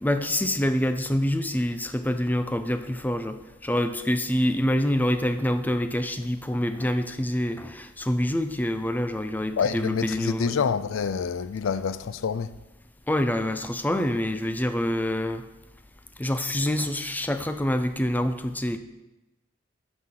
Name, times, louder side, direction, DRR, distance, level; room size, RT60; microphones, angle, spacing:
voice 1, 0.0-10.6 13.1-15.4 16.2-18.8, left 1 dB, 10° left, 0.5 m, -26 dB
voice 2, 9.6-12.5, left 6 dB, 85° left, 0.4 m, -27 dB
11.5 x 6.0 x 3.8 m
head